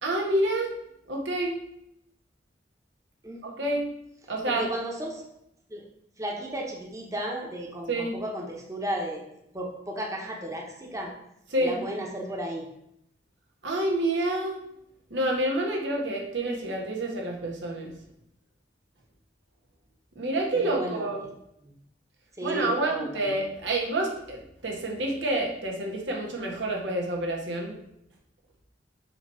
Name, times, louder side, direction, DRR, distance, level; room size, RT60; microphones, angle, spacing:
voice 1, 0.0-0.7 1.1-1.6 3.4-3.9 4.3-4.6 7.9-8.1 11.5-11.8 13.6-14.6 15.1-17.9 20.1-21.2 22.4-27.8, right 1 dB, 85° right, 0 dB, 1.5 m, -28 dB
voice 2, 3.2-3.6 4.5-5.3 5.7-5.8 6.2-9.2 9.5-11.1 11.6-12.7 20.5-21.1 21.6-21.7 22.4-23.2, right 1 dB, 15° right, -1 dB, 1.1 m, -34 dB
7.8 x 3.1 x 5.6 m, 0.78 s
head